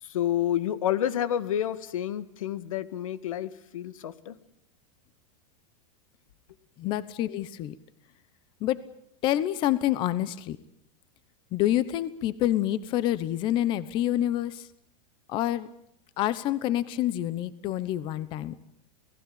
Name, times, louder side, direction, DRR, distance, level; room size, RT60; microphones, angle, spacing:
voice 1, 0.0-4.4, left 11 dB, 90° left, 15 dB, 1.8 m, -29 dB
voice 2, 6.8-7.7 8.6-8.8 9.2-10.6 11.5-14.7 15.3-15.7 16.2-18.6, left 13 dB, 30° left, 17 dB, 1.0 m, -27 dB
29.0 x 18.5 x 8.8 m, 0.72 s
supercardioid pair, 165°, 17 cm